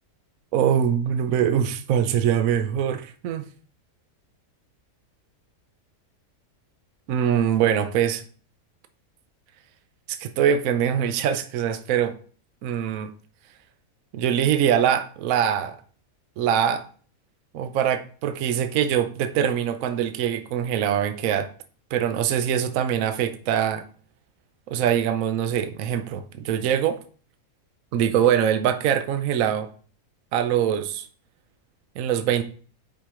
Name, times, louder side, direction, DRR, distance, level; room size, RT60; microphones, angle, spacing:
voice 1, 0.5-3.5 7.1-8.2 10.1-12.1 12.6-13.1 14.1-15.8 16.4-16.8 17.5-21.5 21.9-23.9 24.7-27.0 27.9-29.7 30.3-31.1 32.0-32.4, right 9 dB, 70° right, 1.0 m, -23 dB
5.6 x 5.2 x 4.8 m
omnidirectional pair, 1.6 m